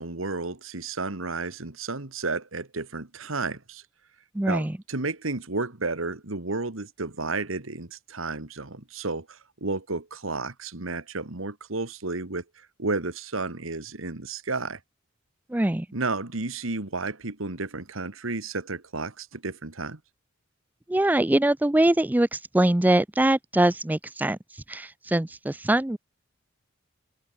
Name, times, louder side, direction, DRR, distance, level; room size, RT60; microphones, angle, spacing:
voice 1, 0.0-3.8 4.5-12.4 12.8-14.8 15.9-20.0, right 3 dB, 90° right, 2.0 m, -32 dB
voice 2, 4.3-4.8 15.5-15.9 20.9-24.4 24.7-26.0, right 1 dB, 10° right, 0.4 m, -23 dB
head